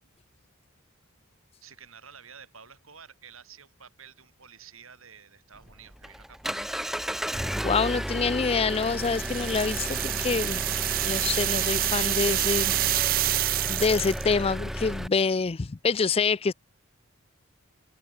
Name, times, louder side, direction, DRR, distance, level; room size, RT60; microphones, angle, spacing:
voice 1, 1.6-6.8, right 7 dB, 85° right, 7.4 m, -50 dB
Engine, 5.6-15.1, equal, ahead, 1.5 m, -33 dB
voice 2, 7.6-10.6 11.0-12.7 13.1-16.5, left 4 dB, 30° left, 0.4 m, -26 dB
sound 1, 8.7-14.3, right 16 dB, 45° right, 0.3 m, -28 dB
open air
head